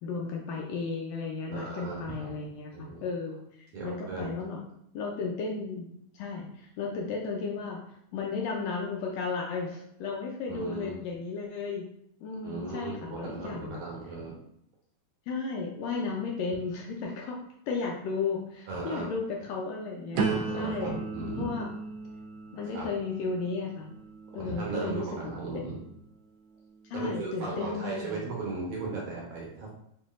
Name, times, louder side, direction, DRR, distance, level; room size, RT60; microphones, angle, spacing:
voice 1, 0.0-4.6 4.9-5.9 6.1-7.8 8.1-11.8 12.2-13.8 15.3-17.4 17.7-21.7 22.5-23.9 24.3-25.7 26.9-28.3, left 4 dB, 80° left, -1 dB, 1.6 m, -34 dB
voice 2, 1.5-2.3 2.7-3.1 3.7-4.3 10.5-11.0 12.4-14.4 18.7-19.1 20.5-21.5 22.7-22.9 24.3-25.9 26.9-29.7, right 3 dB, 70° right, -3 dB, 1.8 m, -37 dB
sound 1, 20.1-26.0 26.5-27.0, right 5 dB, 90° right, 1.3 m, -36 dB
5.7 x 2.6 x 2.4 m, 0.73 s
omnidirectional pair, 3.4 m